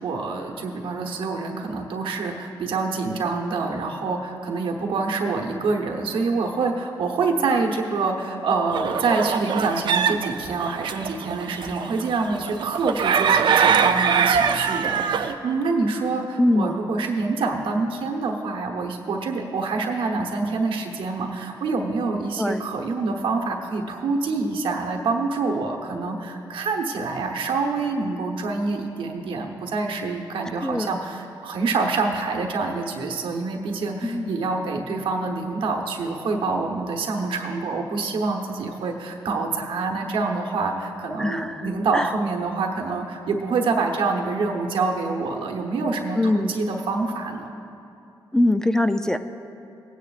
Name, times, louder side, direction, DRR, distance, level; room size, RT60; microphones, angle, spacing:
voice 1, 0.0-47.5, right 3 dB, 85° right, 1 dB, 1.1 m, -26 dB
sound 1, 8.7-15.3, right 7 dB, 65° right, 0.5 m, -22 dB
voice 2, 16.4-16.8 22.4-22.6 30.6-30.9 34.0-34.4 41.2-42.1 46.2-46.7 48.3-49.2, left 1 dB, 5° left, 9 dB, 0.3 m, -23 dB
18.5 x 9.4 x 2.5 m, 2.7 s
cardioid pair, 90°, 8 cm